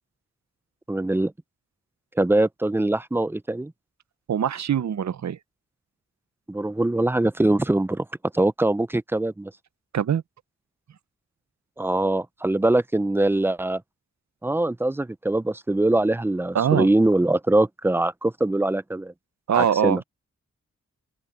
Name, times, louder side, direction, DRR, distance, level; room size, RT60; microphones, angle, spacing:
voice 1, 0.9-1.3 2.2-3.7 6.5-8.1 8.3-9.5 11.8-13.8 14.4-19.1 19.5-20.0, right 2 dB, 10° right, 0.4 m, -22 dB
voice 2, 4.3-5.4 9.9-10.2 16.5-16.9 19.5-20.0, right 8 dB, 65° right, 0.6 m, -22 dB
open air
wide cardioid pair, 135°, 30 cm